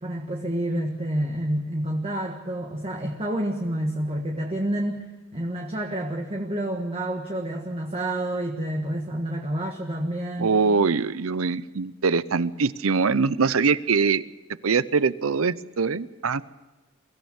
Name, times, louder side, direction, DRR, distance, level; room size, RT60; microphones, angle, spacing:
voice 1, 0.0-5.1 5.3-10.5, right 1 dB, 30° right, 1 dB, 1.5 m, -28 dB
voice 2, 10.4-14.2 14.6-16.4, right 5 dB, 70° right, 17 dB, 0.7 m, -23 dB
23.5 x 15.5 x 7.1 m, 1.2 s
head